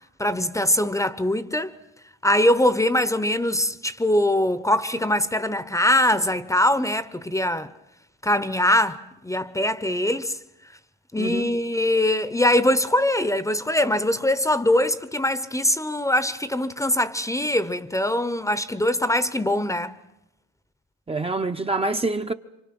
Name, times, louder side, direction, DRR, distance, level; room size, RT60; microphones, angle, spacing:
voice 1, 0.2-1.8 2.2-7.7 8.2-10.4 11.1-20.0, left 1 dB, 10° left, 0.9 m, -22 dB
voice 2, 11.2-11.5 21.1-22.3, right 3 dB, 20° right, 0.8 m, -26 dB
28.0 x 25.0 x 6.1 m
cardioid pair, 90°, 30 cm